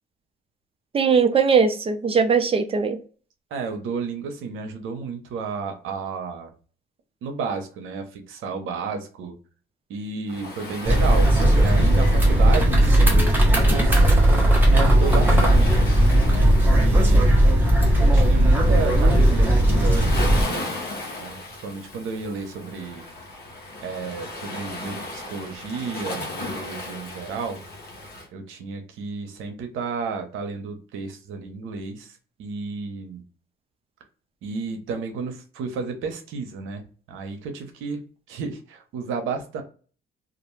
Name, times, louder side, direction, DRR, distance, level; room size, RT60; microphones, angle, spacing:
voice 1, 0.9-3.0, right 5 dB, 30° right, 0.5 m, -20 dB
voice 2, 3.5-6.5 7.2-9.3 9.9-14.0 14.3-15.9 16.3-17.5 18.0-23.0 23.8-27.6 28.3-33.2 34.4-39.6, right 4 dB, 85° right, 0.7 m, -32 dB
Waves surf, 10.3-28.3, left 2 dB, 55° left, 0.9 m, -37 dB
sound 1, 10.8-20.4, right 1 dB, 10° right, 0.9 m, -17 dB
2.4 x 2.2 x 3.0 m
cardioid pair, 90°, 20 cm